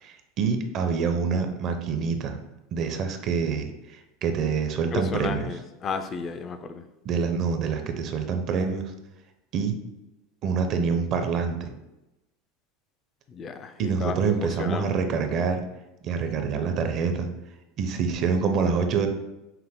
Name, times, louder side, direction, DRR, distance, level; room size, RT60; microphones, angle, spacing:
voice 1, 0.0-2.4 2.7-5.5 7.0-8.9 9.5-9.8 10.4-11.7 13.8-15.6 16.0-17.3 17.8-19.1, right 5 dB, 50° right, 6 dB, 0.6 m, -26 dB
voice 2, 4.9-6.8 13.3-14.9, left 5 dB, 35° left, 9 dB, 0.4 m, -33 dB
5.7 x 2.1 x 3.6 m, 0.96 s
hypercardioid pair, 100°, 0 cm